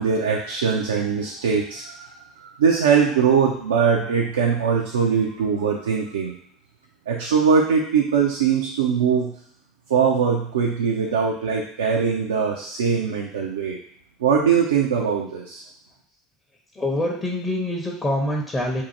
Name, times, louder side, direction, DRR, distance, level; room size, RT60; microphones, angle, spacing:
voice 1, 0.0-6.3 7.1-9.3 9.9-13.8 14.2-15.6, right 6 dB, 75° right, 0 dB, 0.4 m, -21 dB
voice 2, 16.7-18.8, left 1 dB, 20° left, -1 dB, 0.7 m, -25 dB
2.7 x 2.4 x 4.0 m, 0.64 s
figure-of-eight pair, 70°, 0 cm